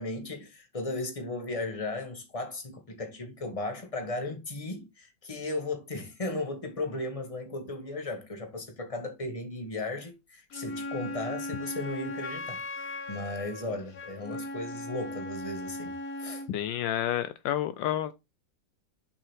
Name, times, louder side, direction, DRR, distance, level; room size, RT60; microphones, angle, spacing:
voice 1, 0.0-12.6 13.1-16.4, left 2 dB, 20° left, 1.7 m, -36 dB
Wind instrument woodwind instrument, 10.5-16.5, left 2 dB, 50° left, 1.5 m, -38 dB
voice 2, 16.5-18.1, left 11 dB, 80° left, 1.3 m, -29 dB
7.3 x 5.5 x 3.5 m
omnidirectional pair, 2.1 m